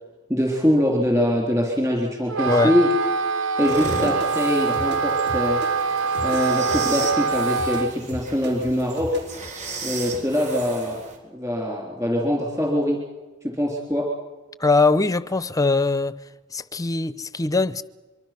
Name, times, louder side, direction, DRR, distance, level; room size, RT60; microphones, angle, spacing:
voice 1, 0.3-2.9 3.6-5.6 6.2-9.1 9.8-11.0 11.3-13.0 13.6-14.0, equal, 15° right, 3.6 m, -23 dB
Wind instrument woodwind instrument, 2.3-7.9, right 5 dB, 70° right, 1.2 m, -24 dB
sound 1, 3.6-11.2, right 3 dB, 35° right, 3.9 m, -35 dB
sound 2, 3.8-9.5, left 1 dB, 50° right, 3.4 m, -36 dB
voice 2, 14.6-16.2 16.5-17.8, left 3 dB, 15° left, 0.7 m, -21 dB
24.5 x 24.0 x 6.0 m
head